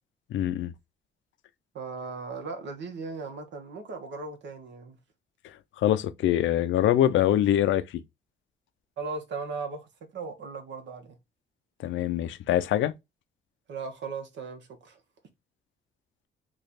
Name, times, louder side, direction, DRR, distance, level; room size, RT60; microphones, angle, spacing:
voice 1, 0.3-0.7 5.8-7.8 11.8-12.9, left 12 dB, 75° left, 0.5 m, -24 dB
voice 2, 1.7-5.0 9.0-11.2 13.7-15.0, right 4 dB, 65° right, 1.1 m, -37 dB
3.1 x 2.4 x 4.0 m
cardioid pair, 90°, 20 cm